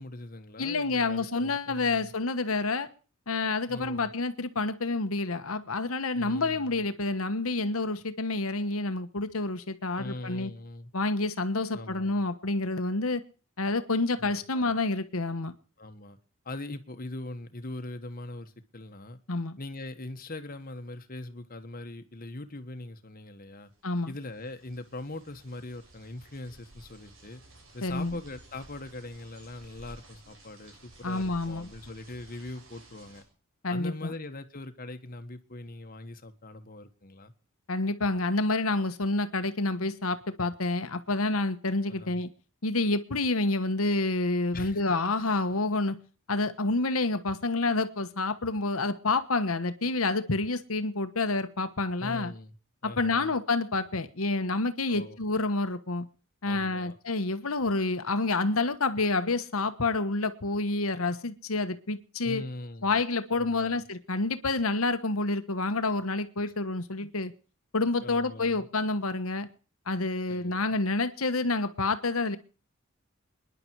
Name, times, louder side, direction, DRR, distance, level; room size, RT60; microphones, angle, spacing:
voice 1, 0.0-2.1 3.7-4.1 6.1-6.8 10.0-10.9 11.7-12.2 14.2-14.8 15.8-16.2 16.4-19.2 19.6-23.7 24.1-27.4 27.7-33.2 33.7-37.3 41.9-42.2 44.5-44.8 52.0-52.5 52.8-53.3 54.9-55.2 56.4-57.0 62.2-62.9 63.4-63.8 66.4-66.5 68.0-68.7 70.3-70.7, left 2 dB, 45° left, 8 dB, 1.5 m, -41 dB
voice 2, 0.6-2.9 3.3-10.5 10.9-13.2 13.6-15.5 19.3-19.6 23.8-24.1 27.8-28.2 31.0-31.7 33.6-34.1 37.7-42.3 42.6-46.0 46.3-52.3 52.8-56.1 56.4-62.4 62.8-67.3 67.7-69.5 69.9-72.4, left 3 dB, 80° left, 10 dB, 1.3 m, -28 dB
sound 1, 23.7-33.2, right 1 dB, 70° right, 7.1 m, -54 dB
28.0 x 11.0 x 4.8 m, 0.39 s
head